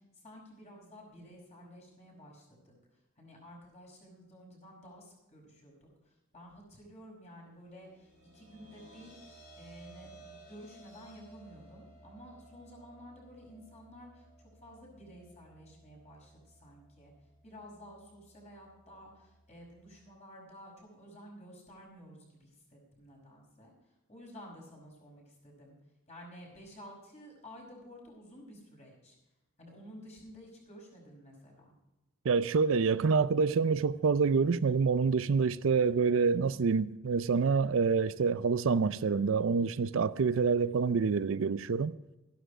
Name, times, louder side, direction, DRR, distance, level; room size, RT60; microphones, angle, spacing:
voice 1, 0.2-2.8 3.2-5.9 6.3-9.2 9.6-17.1 17.4-23.7 24.1-25.8 26.1-29.2 29.6-31.7, equal, 30° left, 5.4 m, -52 dB
sound 1, 7.7-20.1, right 2 dB, 85° left, 5.8 m, -58 dB
voice 2, 32.2-42.0, right 5 dB, 65° right, 0.4 m, -27 dB
13.5 x 11.5 x 5.0 m
head